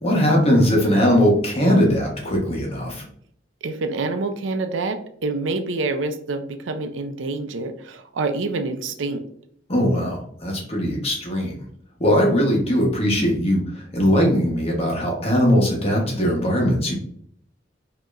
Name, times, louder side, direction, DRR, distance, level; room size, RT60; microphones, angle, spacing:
voice 1, 0.0-3.0 9.7-11.6 12.0-16.9, equal, 35° left, -1 dB, 1.1 m, -20 dB
voice 2, 3.6-9.2, right 3 dB, 90° right, 8 dB, 0.5 m, -27 dB
5.2 x 2.9 x 2.5 m, 0.64 s
head